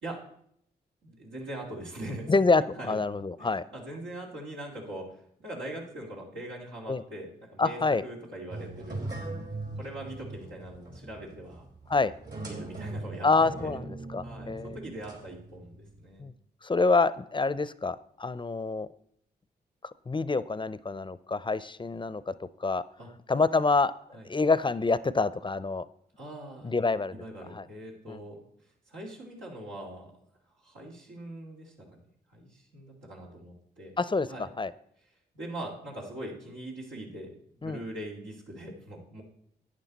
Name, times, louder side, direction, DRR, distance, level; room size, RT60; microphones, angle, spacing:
voice 1, 1.0-2.3 2.8-3.0 3.4-9.1 9.8-11.6 12.4-13.3 13.6-13.7 14.2-16.3 23.0-23.1 24.1-24.3 26.2-26.7 27.2-28.4 28.9-30.2 30.6-31.9 32.3-33.9 34.3-34.5 35.3-39.2, right 1 dB, 90° right, -3 dB, 2.7 m, -41 dB
voice 2, 2.3-3.6 6.9-7.0 7.6-8.0 11.9-12.1 13.2-14.8 16.2-16.3 16.6-18.9 20.1-22.8 23.3-23.9 24.2-25.9 26.6-27.2 27.5-27.7 28.1-28.2 34.0-34.7 37.6-37.8, left 3 dB, 25° left, 16 dB, 0.5 m, -27 dB
sound 1, 8.5-16.1, right 2 dB, 65° right, 3.8 m, -40 dB
11.5 x 8.9 x 4.1 m, 0.67 s
supercardioid pair, 45°, 19 cm